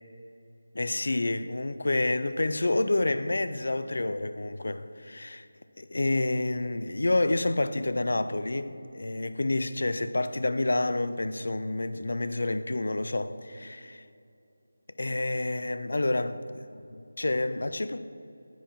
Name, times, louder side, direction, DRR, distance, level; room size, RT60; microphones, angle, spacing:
voice 1, 0.7-5.5 5.8-14.0 15.0-18.0, left 2 dB, 60° left, 0.4 m, -29 dB
10.0 x 4.6 x 7.2 m
figure-of-eight pair, 160°, 0 cm